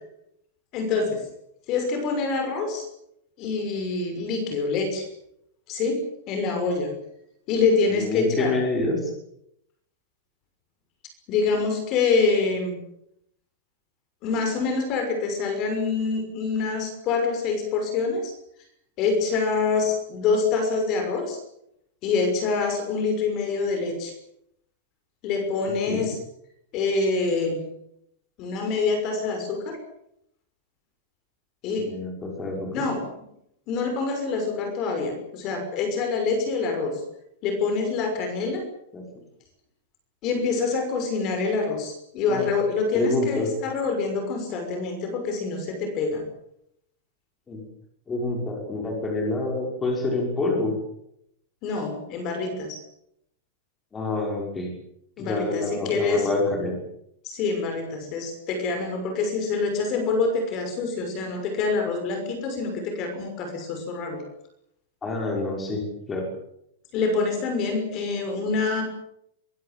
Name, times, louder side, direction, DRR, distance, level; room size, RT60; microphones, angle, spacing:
voice 1, 0.7-1.2 1.7-2.8 3.4-5.1 5.7-6.9 7.5-8.6 11.3-12.8 14.2-18.3 19.0-21.4 22.0-24.1 25.2-26.2 26.7-27.6 28.4-29.8 31.6-31.9 32.7-33.0 33.7-37.0 37.4-38.6 40.2-46.2 51.6-52.8 55.2-56.3 57.2-64.2 66.9-68.8, left 4 dB, 25° left, 6 dB, 6.1 m, -26 dB
voice 2, 8.0-9.1 25.9-26.0 31.8-32.7 38.9-39.0 42.3-42.5 42.9-43.5 47.5-47.6 48.1-50.7 53.9-54.7 55.2-56.8 65.0-65.8 66.1-66.3, left 2 dB, 10° left, 0 dB, 6.0 m, -27 dB
23.5 x 22.5 x 7.7 m, 0.75 s
supercardioid pair, 180°, 0 cm